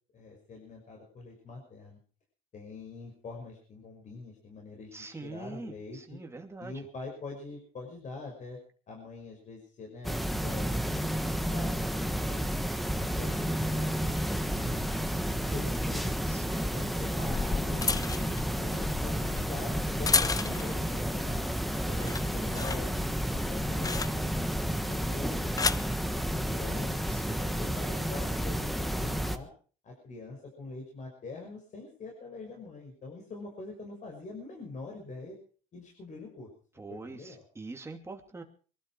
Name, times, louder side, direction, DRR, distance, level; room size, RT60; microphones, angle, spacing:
voice 1, 0.1-2.0 2.5-6.2 6.6-8.6 8.9-10.2 10.4-12.4 13.0-15.1 15.5-16.2 16.6-18.3 18.5-21.4 21.9-23.0 23.3-27.0 27.4-29.5 29.8-35.4 35.7-36.5 36.9-37.4, left 3 dB, 45° left, 0 dB, 6.0 m, -44 dB
voice 2, 4.9-6.8 16.3-16.7 27.1-27.6 36.8-38.4, right 3 dB, 15° right, 3 dB, 2.7 m, -44 dB
sound 1, 10.0-29.4, equal, ahead, 1.3 m, -31 dB
sound 2, 17.1-20.8 21.3-21.6 21.9-24.5 25.2-25.9 26.8-27.1, left 4 dB, 20° left, 0.7 m, -33 dB
23.0 x 12.5 x 4.7 m, 0.41 s
cardioid pair, 110°, 17 cm